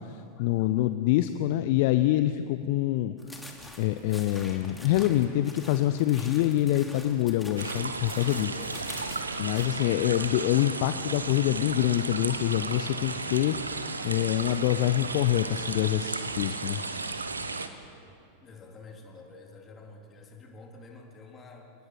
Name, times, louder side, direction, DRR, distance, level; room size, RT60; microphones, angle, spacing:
voice 1, 0.0-3.2 3.8-8.6 9.4-13.6 14.0-16.8, left 14 dB, 50° left, 11 dB, 0.6 m, -26 dB
sound 1, 3.2-9.7, left 1 dB, 5° left, 2.9 m, -46 dB
sound 2, 7.6-17.7, right 3 dB, 80° right, 1.2 m, -34 dB
voice 2, 8.6-9.0 18.4-21.7, left 3 dB, 25° left, 1 dB, 3.6 m, -48 dB
29.5 x 19.0 x 6.4 m, 2.6 s
figure-of-eight pair, 90°, 0 cm